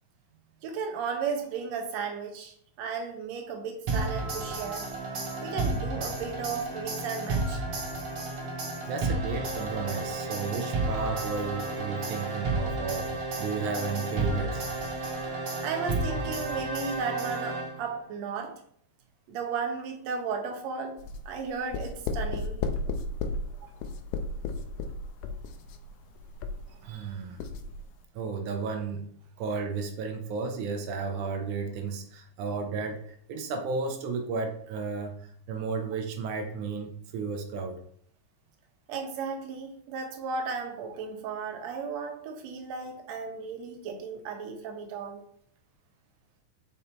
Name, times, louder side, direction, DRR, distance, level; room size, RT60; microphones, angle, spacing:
voice 1, 0.6-4.8 5.4-7.6 15.6-18.5 19.3-20.9 21.3-22.6 23.6-23.7 38.9-45.2, right 5 dB, 70° right, 3 dB, 2.2 m, -34 dB
sound 1, 3.9-18.0, right 2 dB, 55° right, 2.0 m, -32 dB
voice 2, 8.9-14.6 26.7-27.5 28.1-29.1 29.4-37.8, right 4 dB, 85° right, 4 dB, 2.3 m, -33 dB
sound 2, 21.0-27.1 27.4-27.8, left 3 dB, 85° left, 2.1 m, -34 dB
5.5 x 5.4 x 4.3 m, 0.64 s
omnidirectional pair, 3.4 m